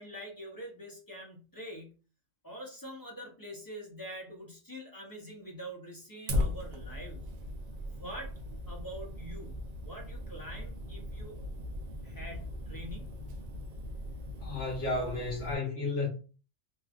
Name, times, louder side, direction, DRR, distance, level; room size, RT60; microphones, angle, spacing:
voice 1, 0.0-2.0 2.4-7.2 7.9-8.3 8.7-11.3 12.0-13.2, equal, 20° left, 0.7 m, -45 dB
Fire, 6.3-15.5, left 1 dB, 60° right, 0.4 m, -38 dB
voice 2, 14.4-16.1, left 3 dB, 80° left, 1.5 m, -32 dB
3.1 x 2.3 x 2.4 m
omnidirectional pair, 1.2 m